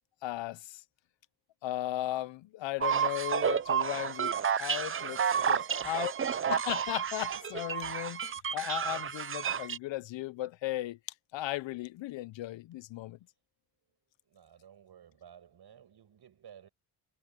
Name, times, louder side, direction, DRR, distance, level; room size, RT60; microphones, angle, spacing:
voice 1, 0.2-0.8 1.6-5.2 5.5-5.6 5.8-6.1 6.5-11.0 11.3-13.2, left 15 dB, 75° left, 0.7 m, -36 dB
sound 1, 2.8-9.8, right 7 dB, 30° right, 0.6 m, -31 dB
voice 2, 5.4-6.3 14.3-16.7, right 9 dB, 60° right, 5.9 m, -54 dB
cardioid pair, 100°, 45 cm